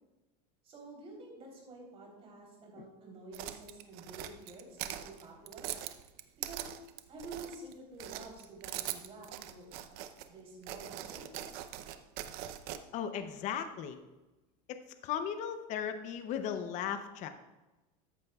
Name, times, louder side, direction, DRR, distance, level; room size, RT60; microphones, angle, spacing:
voice 1, 0.6-5.7 6.4-6.7 7.1-9.7 10.3-11.7, right 2 dB, 30° right, -1 dB, 3.5 m, -49 dB
sound 1, 3.3-7.7 8.0-10.3 10.6-12.8, right 12 dB, 50° right, 0.6 m, -42 dB
voice 2, 12.9-14.0 14.7-14.8 15.0-17.3, left 8 dB, 40° left, 8 dB, 0.6 m, -36 dB
13.5 x 8.9 x 2.3 m, 1.1 s
supercardioid pair, 150°, 20 cm